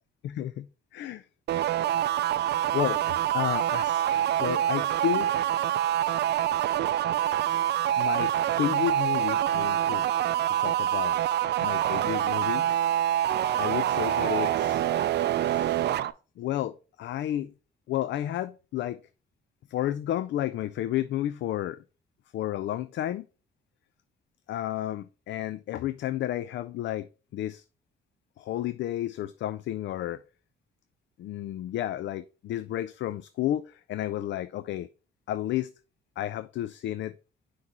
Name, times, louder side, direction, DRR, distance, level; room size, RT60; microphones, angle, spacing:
voice 1, 0.2-1.3 2.7-3.0 3.3-5.4 8.0-10.1 10.5-11.2 11.6-12.7 13.6-14.9 15.4-15.8 16.4-17.5 17.9-19.0 19.7-21.8 22.3-23.3 24.5-27.6 28.4-30.2 31.2-34.9 35.3-35.7 36.2-37.2, left 12 dB, 70° left, 0.4 m, -32 dB
sound 1, 1.5-16.1, right 11 dB, 60° right, 0.4 m, -26 dB
5.8 x 3.2 x 5.3 m
cardioid pair, 90°, 20 cm